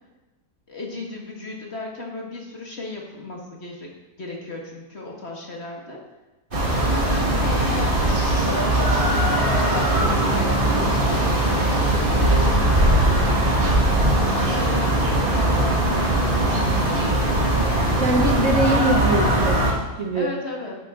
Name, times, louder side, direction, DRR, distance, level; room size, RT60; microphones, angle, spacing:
voice 1, 0.7-3.9 4.2-6.0 6.8-13.4 14.2-17.1 17.7-18.0 20.1-20.8, left 2 dB, 40° left, -1 dB, 2.0 m, -35 dB
sound 1, 6.5-19.7, right 1 dB, 30° right, 2.0 m, -20 dB
voice 2, 18.0-20.3, right 1 dB, 50° right, 2 dB, 1.3 m, -23 dB
10.5 x 10.5 x 3.7 m, 1.1 s
omnidirectional pair, 1.7 m